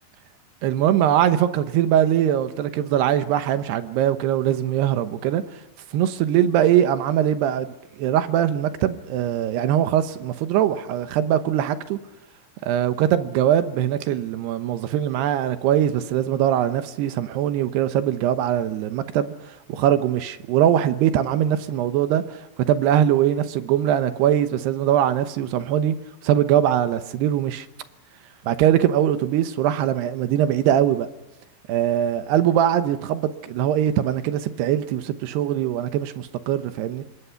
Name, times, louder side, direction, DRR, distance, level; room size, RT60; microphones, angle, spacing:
voice 1, 0.6-5.4 5.9-12.0 12.6-19.3 19.7-22.4 22.7-26.0 26.2-27.7 28.4-31.1 31.7-37.0, right 11 dB, 70° right, 2.7 m, -21 dB
26.0 x 21.5 x 5.8 m
omnidirectional pair, 5.7 m